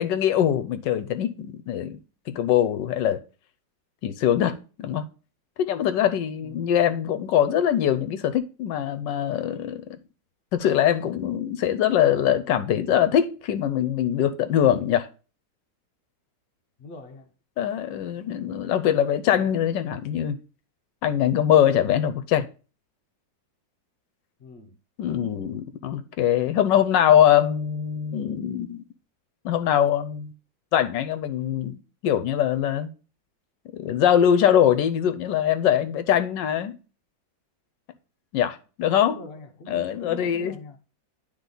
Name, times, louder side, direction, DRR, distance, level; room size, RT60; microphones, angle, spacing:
voice 1, 0.0-2.0 2.3-3.2 4.0-5.0 5.6-9.8 10.5-15.1 17.6-20.4 21.0-22.5 25.0-28.8 29.4-30.3 30.7-32.9 33.7-36.7 38.3-39.2 39.7-40.8, left 10 dB, 75° left, 1.2 m, -22 dB
voice 2, 16.8-17.3 24.4-24.8 25.2-25.3 39.0-40.8, left 1 dB, 50° left, 0.8 m, -43 dB
9.8 x 3.4 x 3.8 m
omnidirectional pair, 2.0 m